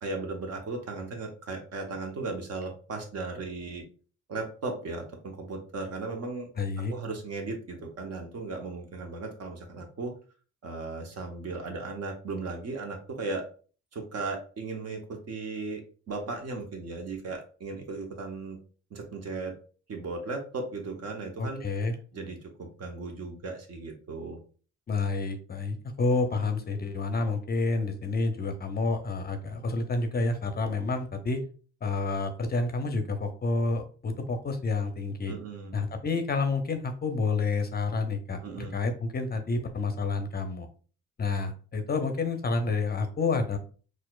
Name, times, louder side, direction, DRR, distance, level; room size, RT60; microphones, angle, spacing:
voice 1, 0.0-3.8 4.3-6.5 6.9-10.1 10.6-13.5 13.9-15.8 16.1-18.6 18.9-19.5 19.9-21.6 22.1-24.4 35.3-35.7 38.4-38.7, right 3 dB, 55° right, 3 dB, 1.0 m, -36 dB
voice 2, 6.6-6.9 21.4-22.0 24.9-31.4 31.8-35.3 35.7-40.7 41.2-43.6, left 3 dB, 30° left, 7 dB, 0.5 m, -29 dB
4.1 x 2.4 x 2.3 m, 0.39 s
cardioid pair, 90°, 30 cm